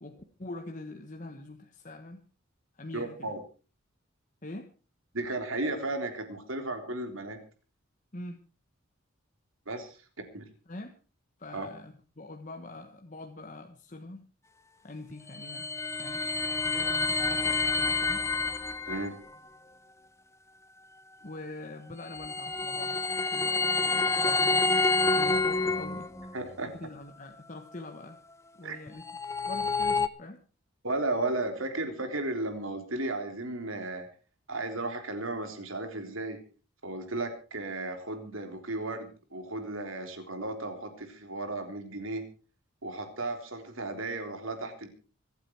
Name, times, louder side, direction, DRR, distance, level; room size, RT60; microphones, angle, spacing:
voice 1, 0.0-2.2 2.7-3.4 4.4-4.7 8.1-8.4 10.7-11.0 11.4-14.2 14.8-15.7 16.0-16.2 16.7-18.2 21.2-23.0 23.3-24.7 25.2-26.1 26.6-28.2 28.5-29.1 29.5-30.4, left 2 dB, 35° left, 4 dB, 1.3 m, -44 dB
voice 2, 2.9-3.4 5.1-7.4 9.7-10.0 10.3-10.5 11.5-11.7 18.9-19.2 26.3-26.7 28.6-28.8 30.8-34.1 34.5-36.4 36.8-42.2 42.8-44.9, right 2 dB, 70° right, 5 dB, 3.7 m, -34 dB
sound 1, 15.1-19.1 21.9-26.3 28.9-30.1, left 3 dB, 15° left, 0.7 m, -28 dB
25.0 x 9.0 x 4.7 m, 0.37 s
head